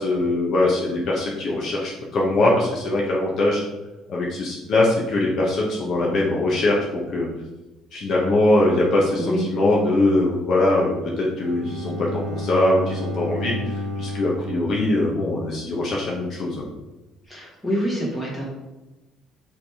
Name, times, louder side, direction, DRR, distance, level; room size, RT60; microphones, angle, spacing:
voice 1, 0.0-3.7 4.1-7.3 7.9-16.7, left 2 dB, 50° left, -3 dB, 1.2 m, -22 dB
Bowed string instrument, 11.4-15.5, left 1 dB, 40° right, 1.2 m, -31 dB
voice 2, 17.3-18.5, equal, 10° left, -5 dB, 2.1 m, -26 dB
5.8 x 3.5 x 4.9 m, 1.1 s
cardioid pair, 135°, 0 cm